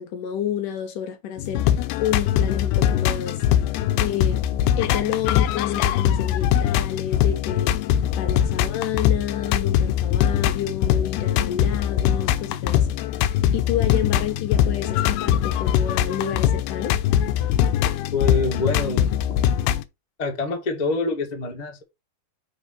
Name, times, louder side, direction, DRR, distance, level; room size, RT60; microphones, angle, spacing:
voice 1, 0.0-3.4 4.0-4.4 4.8-12.9 13.2-17.0, left 9 dB, 65° left, 2.4 m, -29 dB
sound 1, 1.4-19.8, left 10 dB, 90° left, 2.7 m, -22 dB
voice 2, 18.1-19.1 20.2-21.8, left 3 dB, 50° left, 0.5 m, -26 dB
6.2 x 5.0 x 5.7 m
omnidirectional pair, 4.5 m